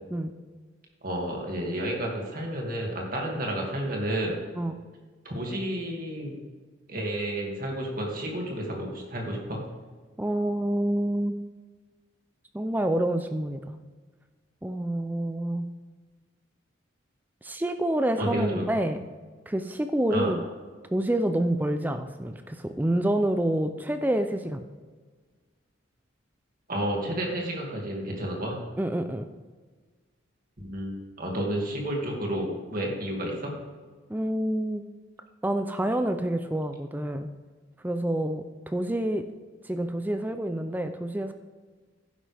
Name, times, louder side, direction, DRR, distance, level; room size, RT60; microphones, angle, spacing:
voice 1, 1.0-4.4 5.2-6.4 6.9-9.6 18.2-18.6 20.1-20.3 26.7-28.6 30.6-33.5, right 1 dB, 45° right, -1 dB, 2.3 m, -31 dB
voice 2, 10.2-11.3 12.5-13.6 14.6-15.7 17.4-19.0 19.5-20.4 20.9-24.6 28.8-29.3 34.1-34.8 35.4-37.3 37.8-39.2 39.6-41.3, right 1 dB, 10° right, 8 dB, 0.4 m, -27 dB
11.5 x 10.0 x 3.4 m, 1.4 s
head